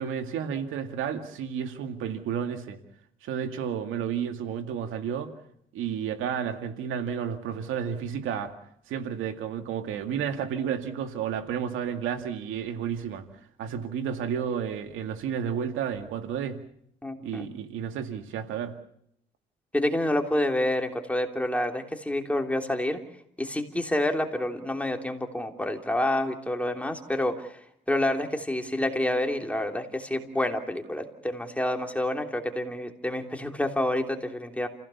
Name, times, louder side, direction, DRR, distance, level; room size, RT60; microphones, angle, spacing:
voice 1, 0.0-2.8 3.2-5.3 5.7-8.5 8.9-13.3 13.6-16.6 17.2-18.7, right 8 dB, 90° right, 7 dB, 2.2 m, -31 dB
voice 2, 17.0-17.5 19.7-23.0 23.4-27.6 27.9-34.7, left 1 dB, 5° left, 4 dB, 3.2 m, -28 dB
29.5 x 16.5 x 7.1 m, 0.71 s
cardioid pair, 90°, 20 cm